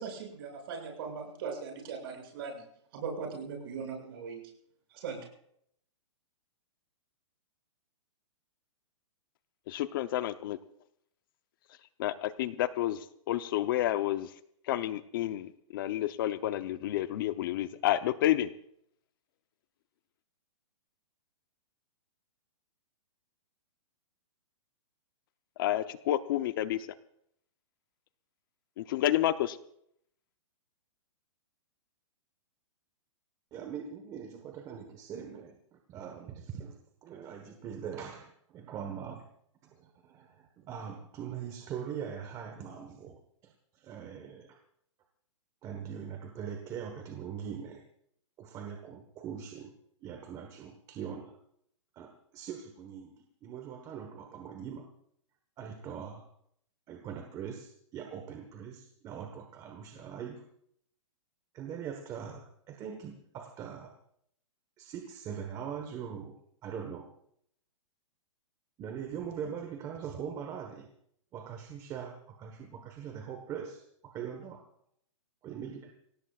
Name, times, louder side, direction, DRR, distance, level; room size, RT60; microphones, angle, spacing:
voice 1, 0.0-2.6 2.9-4.5 4.9-5.3, right 5 dB, 45° right, 1 dB, 6.8 m, -39 dB
voice 2, 9.7-10.6 12.0-13.0 13.3-14.3 14.7-18.5 25.6-26.8 28.8-29.6, left 13 dB, 45° left, 12 dB, 0.7 m, -30 dB
voice 3, 33.5-39.2 39.6-44.6 45.6-47.8 48.4-49.7 50.0-51.4 51.9-54.9 55.6-56.3 56.9-60.4 61.5-63.9 64.8-66.3 66.6-67.1 68.8-70.9 71.3-74.6 75.4-75.9, right 8 dB, 20° right, 4 dB, 1.3 m, -42 dB
27.0 x 17.5 x 2.4 m, 0.69 s
hypercardioid pair, 155°, 17 cm